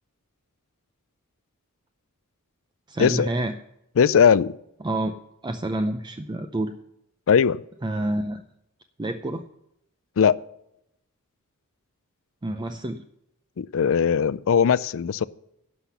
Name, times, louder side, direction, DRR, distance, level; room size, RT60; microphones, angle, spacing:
voice 1, 2.9-3.6 4.8-5.1 5.4-6.7 7.8-8.4 9.0-9.4 12.4-13.0, right 1 dB, 20° right, 7 dB, 0.5 m, -28 dB
voice 2, 4.0-4.5 7.3-7.6 10.2-10.4 13.6-15.2, left 7 dB, 60° left, 19 dB, 0.4 m, -19 dB
11.5 x 5.8 x 8.1 m, 0.81 s
head